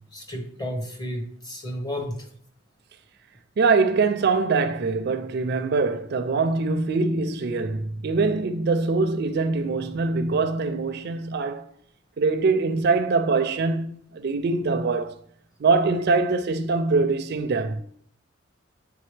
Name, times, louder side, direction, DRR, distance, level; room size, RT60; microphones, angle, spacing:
voice 1, 0.1-2.3, equal, 20° left, 1.0 m, -32 dB
voice 2, 3.6-11.7 12.2-15.2 15.6-17.8, right 4 dB, 55° right, 0.4 m, -23 dB
8.6 x 3.6 x 3.2 m
head